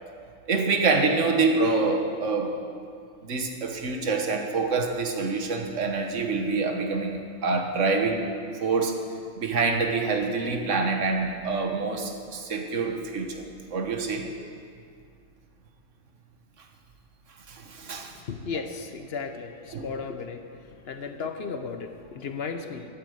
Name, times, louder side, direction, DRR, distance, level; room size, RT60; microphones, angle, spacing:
voice 1, 0.5-2.5 3.2-8.2 8.6-9.0 9.4-13.4 13.7-14.3 17.5-18.1 18.5-18.9 19.7-20.0, right 4 dB, 75° right, 4 dB, 1.5 m, -26 dB
voice 2, 18.3-19.5 19.8-20.4 20.9-22.9, left 5 dB, 60° left, 7 dB, 0.9 m, -34 dB
12.0 x 8.3 x 7.8 m, 2.3 s
omnidirectional pair, 1.3 m